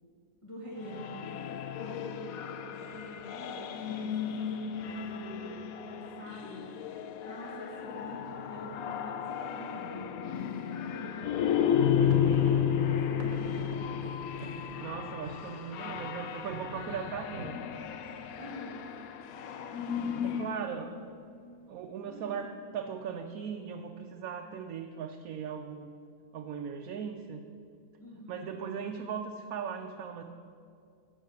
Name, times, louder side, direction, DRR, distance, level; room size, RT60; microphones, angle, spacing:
voice 1, 0.4-1.4 1.7-2.4 2.7-10.2 10.8-14.2 15.9-16.1 18.3-18.9 20.0-21.0 22.1-22.5 28.0-28.5, equal, 20° left, -7 dB, 1.6 m, -46 dB
sound 1, 0.8-20.6, left 8 dB, 85° left, 1.1 m, -33 dB
sound 2, 11.6-19.3 19.6-19.7 20.0-20.2 20.8-21.2, right 1 dB, 65° right, 1.3 m, -46 dB
voice 2, 14.8-17.6 20.2-20.9 21.7-25.9 26.3-27.4 28.3-30.2, right 7 dB, 80° right, 4 dB, 1.1 m, -38 dB
10.0 x 6.6 x 7.9 m, 2.4 s
omnidirectional pair, 1.5 m